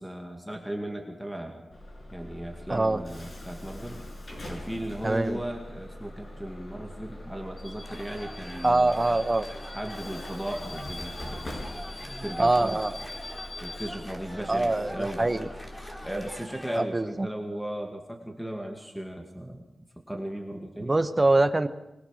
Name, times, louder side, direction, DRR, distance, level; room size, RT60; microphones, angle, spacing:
voice 1, 0.0-1.6 2.1-4.0 4.5-9.0 9.7-11.7 12.0-12.8 13.6-15.3 16.0-19.6 20.0-20.9, right 1 dB, ahead, 2 dB, 2.3 m, -36 dB
Bus / Alarm, 1.7-16.3, left 1 dB, 40° left, 6.0 m, -42 dB
voice 2, 2.7-3.0 5.0-5.4 8.6-9.5 12.4-13.0 14.5-15.5 16.8-17.3 20.8-21.7, right 2 dB, 20° right, 9 dB, 1.1 m, -24 dB
sound 1, 7.8-16.8, equal, 15° left, 3.5 m, -44 dB
24.5 x 21.5 x 6.6 m, 0.93 s
wide cardioid pair, 155°, 0 cm